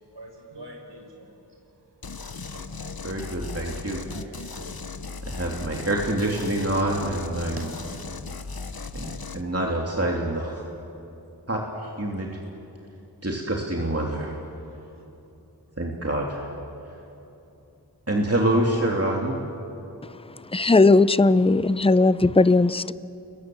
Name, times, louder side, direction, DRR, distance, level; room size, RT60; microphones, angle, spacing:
voice 1, 0.1-1.3 2.5-2.8 4.1-4.8 7.6-7.7, right 1 dB, 85° right, 5.5 m, -44 dB
sound 1, 2.0-9.4, left 4 dB, 60° left, 1.2 m, -37 dB
voice 2, 3.0-4.0 5.2-7.7 8.9-10.6 11.5-12.3 13.2-14.3 15.8-16.5 18.1-19.4, right 1 dB, 35° right, 2.9 m, -26 dB
voice 3, 20.5-22.9, left 3 dB, 15° left, 0.6 m, -17 dB
30.0 x 21.5 x 7.8 m
wide cardioid pair, 40°, 40 cm